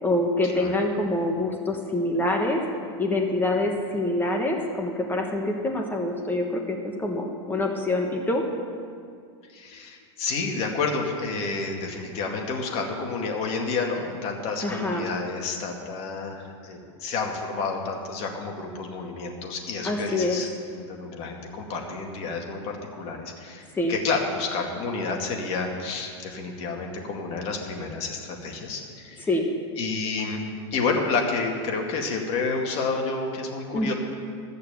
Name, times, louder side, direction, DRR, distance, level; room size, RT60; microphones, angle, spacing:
voice 1, 0.0-2.6 3.0-8.4 14.6-15.1 19.8-20.4 23.7-23.9 29.2-29.5 33.7-33.9, left 2 dB, 15° left, 1 dB, 1.3 m, -25 dB
voice 2, 9.5-29.3 29.8-30.4 30.7-33.9, left 4 dB, 40° left, 1 dB, 2.2 m, -30 dB
14.0 x 6.7 x 8.2 m, 2.2 s
supercardioid pair, 125°, 15 cm